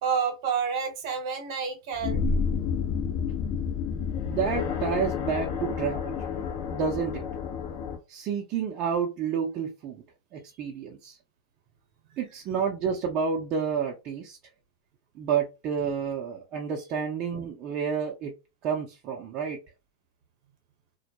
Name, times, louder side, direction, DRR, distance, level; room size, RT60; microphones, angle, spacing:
voice 1, 0.0-2.2, right 6 dB, 60° right, 0.9 m, -29 dB
sound 1, 1.9-8.0, left 6 dB, 50° left, 0.6 m, -30 dB
voice 2, 4.2-6.3 6.7-7.2 8.1-10.0 10.3-11.2 12.2-14.4 15.1-18.3 18.6-19.6, right 6 dB, 40° right, 0.5 m, -30 dB
2.2 x 2.1 x 2.8 m
hypercardioid pair, 105°, 3 cm